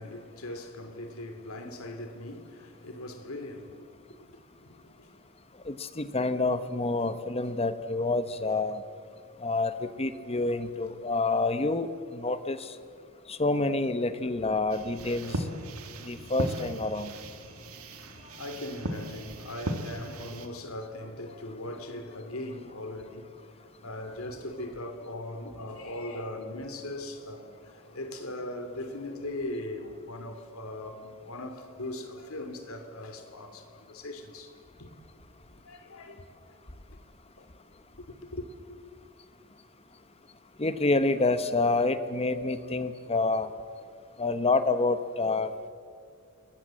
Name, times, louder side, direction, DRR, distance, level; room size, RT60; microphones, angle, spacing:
voice 1, 0.0-3.9 4.2-5.5 17.9-23.3 23.8-34.9 35.6-36.6 37.4-37.5 37.9-38.4, left 1 dB, 70° left, 2.8 m, -40 dB
voice 2, 5.6-8.8 9.4-12.7 13.3-15.4 16.0-17.1 40.6-43.5 44.2-45.5, left 3 dB, 25° left, 1.0 m, -28 dB
sound 1, 14.7-20.5, right 1 dB, 75° right, 2.1 m, -37 dB
28.0 x 22.0 x 7.6 m
head